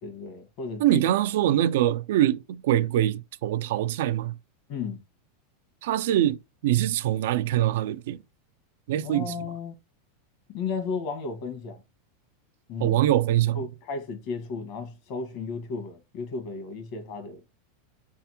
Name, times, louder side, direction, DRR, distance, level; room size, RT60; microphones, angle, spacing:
voice 1, 0.0-1.0 4.7-5.0 9.0-9.7 10.5-11.8 12.7-13.0 13.5-17.4, left 4 dB, 55° left, 1.3 m, -34 dB
voice 2, 0.8-4.3 5.8-8.2 8.9-9.3 12.8-13.6, right 12 dB, 70° right, 0.3 m, -24 dB
4.2 x 3.5 x 2.9 m
supercardioid pair, 130°, 0 cm